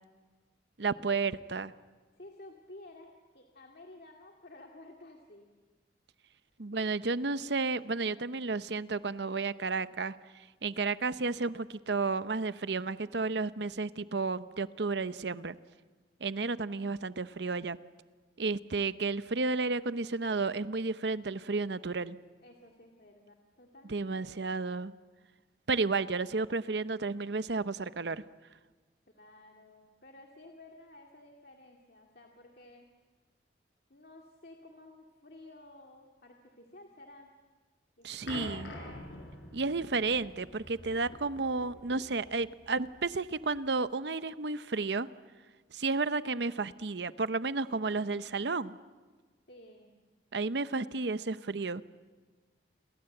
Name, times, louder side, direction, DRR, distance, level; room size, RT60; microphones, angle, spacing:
voice 1, 0.8-1.7 6.6-15.6 16.2-17.8 18.4-22.2 23.9-24.9 25.7-28.2 38.0-38.7 39.5-45.1 45.7-48.8 50.3-51.8, right 3 dB, 70° right, 14 dB, 0.8 m, -32 dB
voice 2, 2.2-5.5 22.4-24.9 29.1-32.9 33.9-37.3 38.0-38.9 49.5-50.0, left 2 dB, 55° left, 2 dB, 2.2 m, -54 dB
sound 1, 38.3-43.7, left 1 dB, 80° left, 6.0 m, -47 dB
29.5 x 23.0 x 7.8 m, 1.4 s
head